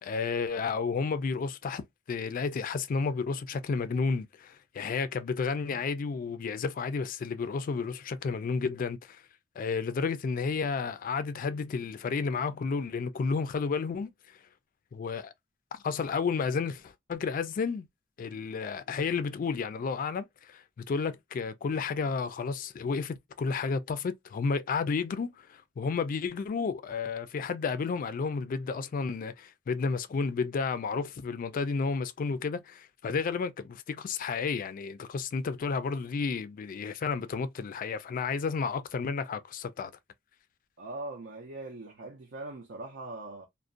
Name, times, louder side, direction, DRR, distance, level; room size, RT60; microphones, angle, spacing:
voice 1, 0.0-9.2 9.6-14.4 14.9-15.3 15.7-17.9 18.2-39.9, left 5 dB, 45° left, 0.3 m, -32 dB
voice 2, 40.8-43.5, right 2 dB, 70° right, 0.5 m, -41 dB
2.4 x 2.1 x 2.4 m
head